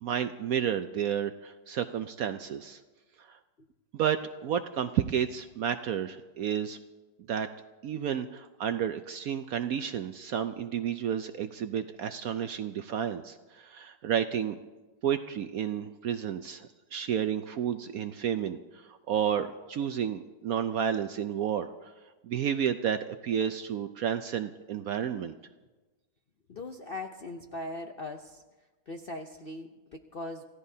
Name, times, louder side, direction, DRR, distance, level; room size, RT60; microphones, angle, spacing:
voice 1, 0.0-2.8 3.3-3.4 3.9-6.8 7.3-7.5 7.8-14.6 15.0-21.9 22.2-25.4, right 9 dB, 70° right, 9 dB, 0.9 m, -31 dB
voice 2, 26.5-28.4 28.9-30.4, left 2 dB, 55° left, 4 dB, 0.6 m, -40 dB
27.5 x 16.5 x 2.8 m, 1.2 s
omnidirectional pair, 1.9 m